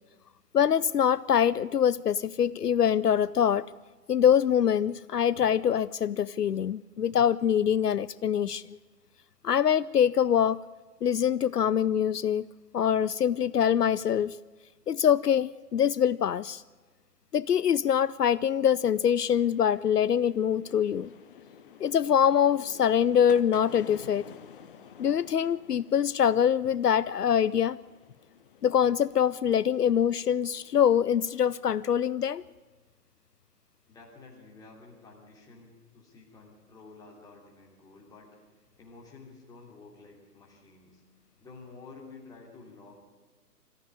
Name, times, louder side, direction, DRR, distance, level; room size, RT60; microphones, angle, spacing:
voice 1, 0.5-3.7 4.1-8.8 9.4-10.6 11.0-12.5 12.7-14.4 14.9-16.6 17.3-21.1 21.8-24.3 25.0-27.8 28.6-32.4, left 8 dB, 75° left, 19 dB, 0.6 m, -24 dB
sound 1, 18.6-32.1, left 8 dB, 35° left, 1.3 m, -52 dB
voice 2, 33.9-38.3 38.6-41.0 41.4-43.0, left 3 dB, 10° left, -1 dB, 3.0 m, -51 dB
22.5 x 14.5 x 9.7 m, 1.3 s
figure-of-eight pair, 130°, 47 cm